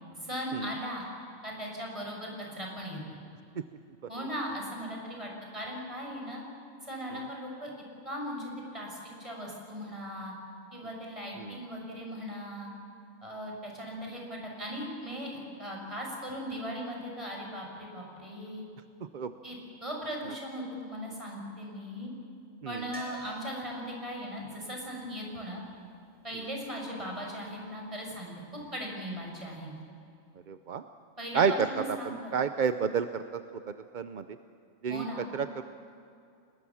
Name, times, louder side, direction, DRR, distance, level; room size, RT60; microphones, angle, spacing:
voice 1, 0.2-1.1 1.4-3.2 4.1-6.4 6.8-7.7 8.0-10.3 10.7-12.7 13.2-18.6 19.4-19.6 19.8-22.1 22.7-25.6 26.2-29.7 31.2-32.3 34.9-35.3, equal, 25° right, -1 dB, 6.1 m, -38 dB
sound 1, 22.9-26.8 29.5-29.6 29.8-29.9, right 1 dB, 5° right, 4.4 m, -51 dB
voice 2, 30.5-30.8 31.3-31.7 32.0-33.4 33.7-34.2 34.8-35.1 35.3-35.6, right 6 dB, 50° right, 9 dB, 0.6 m, -30 dB
30.0 x 20.0 x 7.2 m, 2.4 s
omnidirectional pair, 1.4 m